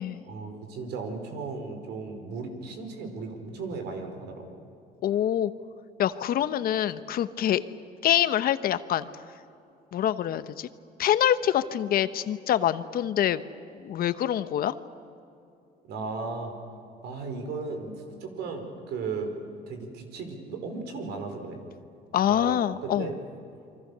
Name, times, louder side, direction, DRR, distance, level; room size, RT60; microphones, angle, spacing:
voice 1, 0.3-4.5 15.8-16.5 17.0-17.9 18.2-19.3 19.7-21.6 22.2-23.2, right 4 dB, 80° right, 5 dB, 4.6 m, -36 dB
voice 2, 5.0-5.5 6.0-7.6 8.0-9.1 9.9-10.7 11.0-13.4 13.7-14.7 22.1-23.1, left 11 dB, 60° left, 13 dB, 1.1 m, -25 dB
29.0 x 24.0 x 6.9 m, 2.6 s
cardioid pair, 110°, 17 cm